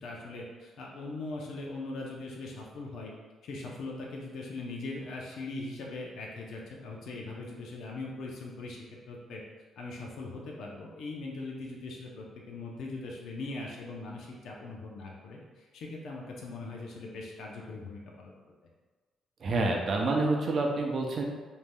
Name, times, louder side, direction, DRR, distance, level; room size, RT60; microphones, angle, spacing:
voice 1, 0.0-3.1 3.4-8.8 9.1-9.4 9.8-18.5, left 2 dB, 75° left, -2 dB, 0.6 m, -40 dB
voice 2, 19.4-21.2, right 2 dB, 50° right, 1 dB, 0.5 m, -28 dB
3.2 x 2.7 x 2.2 m, 1.3 s
cardioid pair, 90°, 0 cm